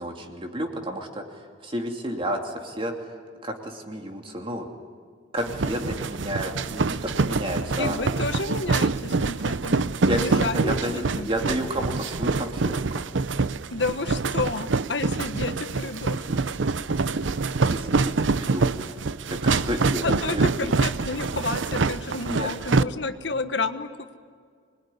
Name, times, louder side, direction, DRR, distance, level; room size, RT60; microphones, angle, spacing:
voice 1, 0.0-3.1 3.4-4.7 5.3-8.0 10.0-12.8 17.5-19.0 19.3-20.4 22.3-22.5, equal, 30° right, 3 dB, 2.8 m, -31 dB
sound 1, 5.4-22.8, right 4 dB, 85° right, 0.7 m, -25 dB
voice 2, 7.8-11.3 13.7-16.2 20.0-23.9, left 3 dB, 70° left, 9 dB, 1.4 m, -30 dB
26.0 x 21.0 x 10.0 m, 2.1 s
head